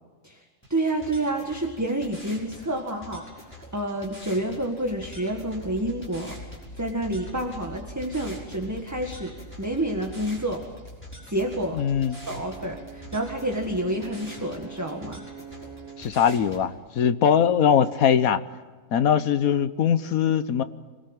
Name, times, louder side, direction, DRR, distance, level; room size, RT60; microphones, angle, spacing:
sound 1, 0.6-16.6, left 1 dB, 10° left, 6.0 m, -46 dB
voice 1, 0.7-10.7 11.3-11.8 12.2-15.2, right 1 dB, 10° right, 2 dB, 1.8 m, -29 dB
sound 2, 4.4-14.0, left 1 dB, 65° left, 3.6 m, -45 dB
voice 2, 11.7-12.2 16.0-18.4 18.9-20.6, left 8 dB, 85° left, 12 dB, 1.4 m, -21 dB
Brass instrument, 12.0-16.2, right 7 dB, 80° right, 2.2 m, -44 dB
27.0 x 19.5 x 9.0 m, 1.4 s
omnidirectional pair, 1.5 m